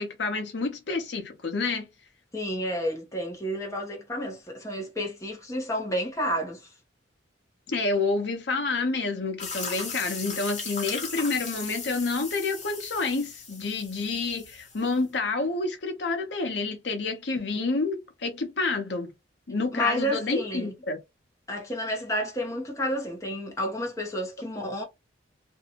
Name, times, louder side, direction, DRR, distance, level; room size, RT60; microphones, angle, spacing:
voice 1, 0.0-1.9 7.7-19.1 19.5-21.0, left 3 dB, 65° left, 0.8 m, -29 dB
voice 2, 2.3-6.7 17.5-17.6 19.7-20.7 21.5-24.8, equal, 15° left, 0.7 m, -30 dB
sound 1, 9.4-15.0, left 4 dB, 40° left, 1.2 m, -37 dB
2.6 x 2.2 x 2.8 m
head